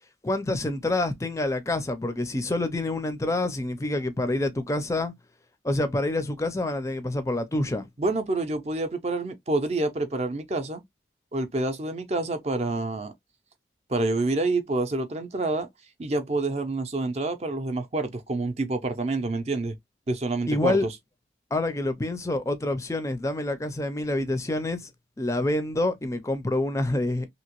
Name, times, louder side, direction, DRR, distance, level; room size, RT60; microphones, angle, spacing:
voice 1, 0.2-5.1 5.6-7.9 20.5-20.9 21.5-24.9 25.2-27.3, left 2 dB, 15° left, 0.4 m, -27 dB
voice 2, 8.0-10.8 11.3-13.1 13.9-15.7 16.0-19.8 20.1-20.9, right 2 dB, 35° right, 0.5 m, -27 dB
2.9 x 2.8 x 2.9 m
head